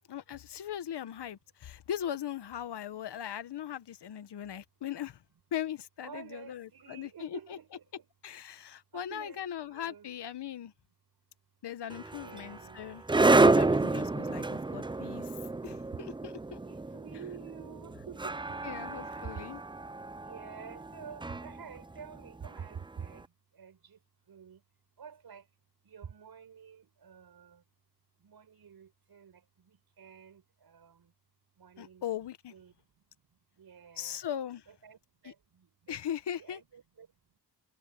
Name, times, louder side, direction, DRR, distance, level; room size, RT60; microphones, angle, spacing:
voice 1, 0.1-5.2 5.5-7.6 8.2-10.7 11.6-13.0 13.3-15.3 15.6-16.6 18.6-19.6 31.8-32.5 34.0-34.6 35.2-35.3 35.9-36.6, left 10 dB, 60° left, 1.5 m, -39 dB
voice 2, 6.0-8.1 8.9-10.1 12.1-12.8 16.6-18.7 19.0-19.4 20.3-23.2 23.6-24.0 24.3-24.6 25.0-25.4 25.8-27.6 28.2-29.4 29.7-31.1 31.6-32.2 32.5-32.7 33.6-34.2 34.7-35.0 35.2-36.0 36.2-37.1, right 7 dB, 55° right, 5.8 m, -49 dB
sound 1, 11.9-23.0, right 3 dB, 10° right, 0.6 m, -29 dB
cardioid pair, 65°, 45 cm